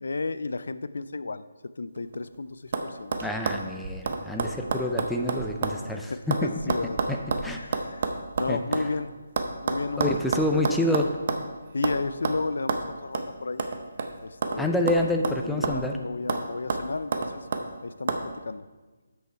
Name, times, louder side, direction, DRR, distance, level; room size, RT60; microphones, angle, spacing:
voice 1, 0.0-3.1 5.9-7.0 7.5-9.1 9.6-10.9 11.7-13.6 14.2-14.9 15.4-17.5 17.8-18.7, left 3 dB, 70° left, 14 dB, 0.4 m, -33 dB
sound 1, 2.0-2.3 2.7-2.9 3.1-5.8 6.1-8.9 9.4-11.5 11.8-12.0 12.2-12.4 12.7-12.8 13.1-13.3 13.6-14.6 14.9-15.9 16.3-16.4 16.7-17.6 18.1-18.2, right 4 dB, 45° right, 0.7 m, -29 dB
voice 2, 3.2-6.7 7.1-7.8 8.5-8.6 10.0-11.1 14.6-15.9, left 1 dB, ahead, 2 dB, 0.5 m, -28 dB
8.2 x 6.4 x 4.5 m, 1.3 s
figure-of-eight pair, 150°, 0 cm